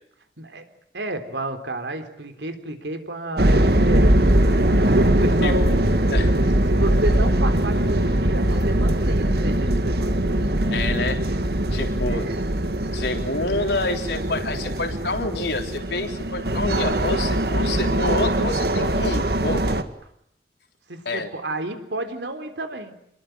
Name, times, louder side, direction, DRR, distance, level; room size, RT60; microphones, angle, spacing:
voice 1, 0.9-4.6 4.9-5.9 6.3-6.4 6.7-10.2 12.1-12.4 17.5-18.0 20.9-23.0, right 1 dB, 90° right, 8 dB, 3.8 m, -31 dB
sound 1, 3.4-19.8, right 1 dB, 65° right, 1.9 m, -21 dB
voice 2, 10.7-11.2 11.7-12.3 12.9-19.7 21.1-21.3, left 2 dB, 75° left, 4 dB, 3.8 m, -28 dB
27.0 x 22.0 x 9.2 m, 0.74 s
head